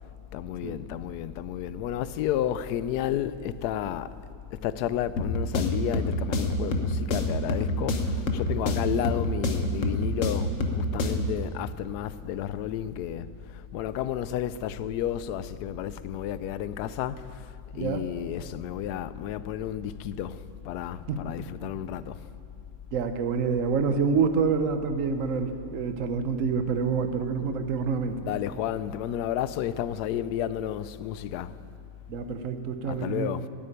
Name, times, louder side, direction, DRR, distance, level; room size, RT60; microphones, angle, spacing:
voice 1, 0.3-4.1 4.5-22.3 28.1-31.6 32.8-33.5, left 10 dB, 75° left, 1.1 m, -32 dB
sound 1, 5.2-11.4, left 1 dB, 50° left, 1.4 m, -28 dB
voice 2, 22.9-28.2 32.1-33.4, right 5 dB, 55° right, 1.2 m, -27 dB
14.5 x 9.0 x 9.9 m
omnidirectional pair, 1.8 m